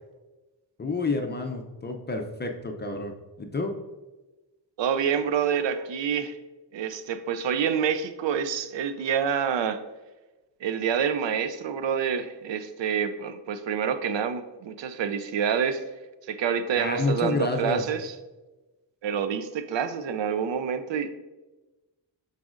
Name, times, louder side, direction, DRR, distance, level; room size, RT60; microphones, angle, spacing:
voice 1, 0.8-3.7 16.8-17.8, left 3 dB, 25° left, 4 dB, 0.5 m, -29 dB
voice 2, 4.8-6.4 6.7-9.8 10.6-15.8 16.3-18.1 19.0-21.1, right 7 dB, 75° right, 10 dB, 0.6 m, -27 dB
12.5 x 4.1 x 2.5 m, 1.1 s
wide cardioid pair, 145°, 44 cm